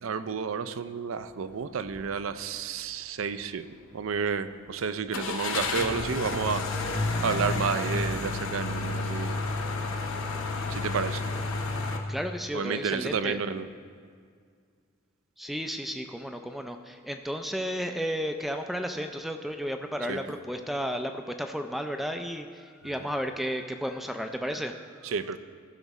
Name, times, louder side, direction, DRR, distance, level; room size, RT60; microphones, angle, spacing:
voice 1, 0.0-6.9 7.2-9.4 10.7-11.2 12.5-13.7 20.1-20.2 25.0-25.4, right 6 dB, 75° right, 13 dB, 0.4 m, -31 dB
sound 1, 1.9-2.1 2.5-2.6 5.1-12.0, left 3 dB, 80° left, 0.9 m, -30 dB
voice 2, 12.1-13.4 15.4-25.1, equal, ahead, 5 dB, 0.3 m, -33 dB
15.0 x 6.0 x 4.1 m, 2.1 s
head